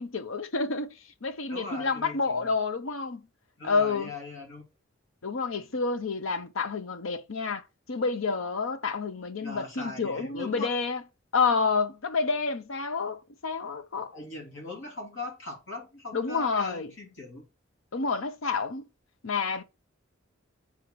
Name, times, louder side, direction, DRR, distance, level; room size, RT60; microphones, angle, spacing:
voice 1, 0.0-3.2 3.6-4.1 5.2-11.0 11.3-14.1 16.1-16.9 17.9-18.9 19.2-19.6, left 4 dB, 90° left, 0.8 m, -29 dB
voice 2, 1.5-2.5 3.6-4.6 9.4-10.7 14.1-17.4, left 2 dB, 75° left, 2.8 m, -40 dB
6.8 x 4.5 x 4.6 m
head